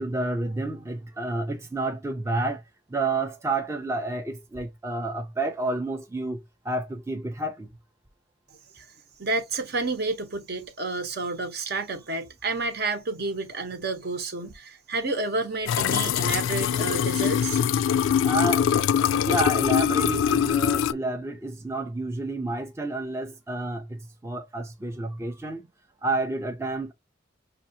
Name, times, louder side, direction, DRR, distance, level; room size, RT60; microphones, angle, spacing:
voice 1, 0.0-2.6 2.9-7.7 18.2-18.7 19.1-25.6 26.0-26.9, right 2 dB, 15° right, 0.4 m, -30 dB
voice 2, 9.2-17.9, right 3 dB, 55° right, 1.0 m, -30 dB
sound 1, 15.7-20.9, left 8 dB, 85° left, 0.3 m, -23 dB
5.9 x 2.4 x 2.7 m
head